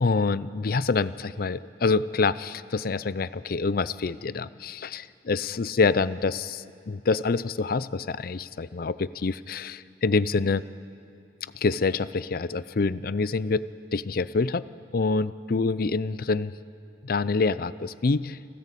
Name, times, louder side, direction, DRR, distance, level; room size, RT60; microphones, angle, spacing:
voice 1, 0.0-10.6 11.5-13.7 13.9-14.6 14.9-16.5 17.0-18.4, left 4 dB, 55° left, 17 dB, 0.5 m, -26 dB
29.0 x 13.5 x 8.3 m, 2.6 s
head